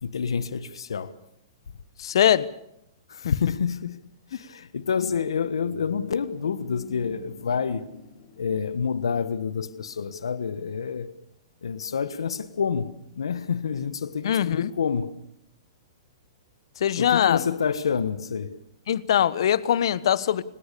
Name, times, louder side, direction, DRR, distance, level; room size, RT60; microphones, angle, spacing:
voice 1, 0.0-1.2 3.1-4.0 4.3-7.9 8.4-11.1 11.6-15.2 17.0-18.6, left 6 dB, 85° left, 1.4 m, -28 dB
voice 2, 2.0-2.5 14.2-14.7 16.8-17.4 18.9-20.4, left 10 dB, 70° left, 1.2 m, -22 dB
sound 1, 5.4-10.7, left 4 dB, 50° left, 4.3 m, -50 dB
29.5 x 18.5 x 6.9 m
hypercardioid pair, 135°, 3 cm